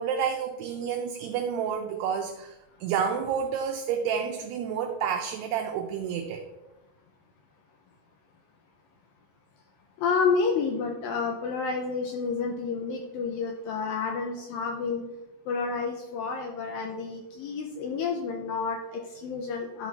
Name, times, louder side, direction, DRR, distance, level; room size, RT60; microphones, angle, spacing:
voice 1, 0.0-6.4, right 7 dB, 80° right, 3 dB, 2.6 m, -30 dB
voice 2, 10.0-15.0 15.5-19.9, left 5 dB, 80° left, 3 dB, 2.1 m, -30 dB
12.0 x 6.0 x 4.1 m, 1.0 s
omnidirectional pair, 5.1 m